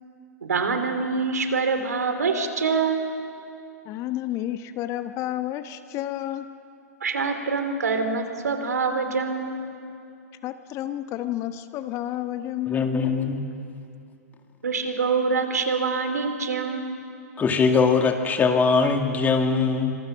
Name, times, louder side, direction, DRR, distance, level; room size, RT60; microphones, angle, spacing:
voice 1, 0.4-3.0 7.0-9.6 14.6-17.0, right 4 dB, 75° right, 7 dB, 2.9 m, -25 dB
voice 2, 3.8-6.5 10.4-13.1, left 13 dB, 35° left, 10 dB, 1.0 m, -31 dB
voice 3, 12.7-13.4 17.4-19.9, left 5 dB, 20° left, 5 dB, 2.2 m, -21 dB
26.0 x 21.5 x 6.3 m, 2.5 s
figure-of-eight pair, 110°, 9 cm